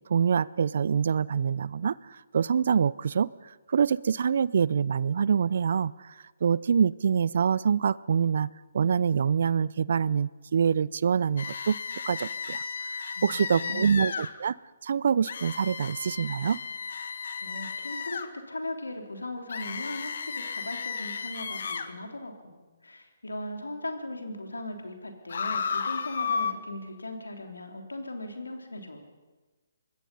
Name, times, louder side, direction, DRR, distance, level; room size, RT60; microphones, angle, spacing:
voice 1, 0.1-3.3 3.7-6.1 6.4-11.8 12.0-12.6 12.9-14.6 14.8-16.6, right 7 dB, 60° right, 22 dB, 0.6 m, -25 dB
sound 1, 11.4-14.3 15.3-18.3 19.5-21.9 25.3-26.5, left 5 dB, 60° left, 1.6 m, -34 dB
voice 2, 13.2-14.0 17.4-29.0, left 1 dB, 85° left, 4 dB, 3.6 m, -38 dB
25.0 x 20.5 x 5.6 m, 1.2 s
figure-of-eight pair, 140°, 0 cm